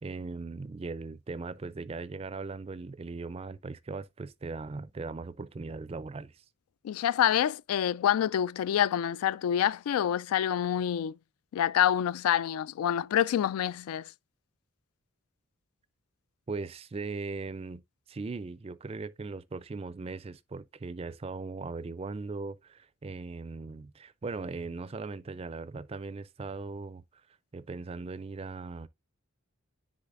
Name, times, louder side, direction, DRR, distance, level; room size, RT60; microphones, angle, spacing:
voice 1, 0.0-6.4 16.5-17.8 18.1-27.0 27.5-28.9, right 3 dB, 25° right, 0.4 m, -39 dB
voice 2, 6.8-11.1 11.5-14.1, left 10 dB, 85° left, 0.3 m, -27 dB
10.0 x 4.0 x 2.4 m
head